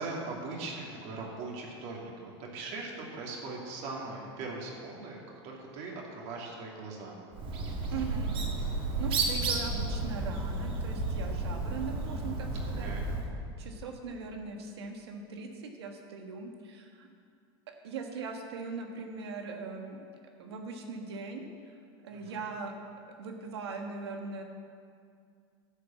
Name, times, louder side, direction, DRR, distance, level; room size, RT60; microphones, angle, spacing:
voice 1, 0.0-7.2 12.6-13.1 22.1-22.4, right 3 dB, 55° right, -2 dB, 2.8 m, -40 dB
Bird, 7.3-13.3, right 3 dB, 40° right, 2.0 m, -32 dB
voice 2, 7.9-8.3 9.0-12.9 13.6-17.1 17.7-20.0 20.4-21.4 22.0-22.7 23.2-24.4, right 4 dB, 90° right, 3 dB, 1.6 m, -40 dB
11.0 x 6.7 x 7.3 m, 2.2 s
supercardioid pair, 110°, 13 cm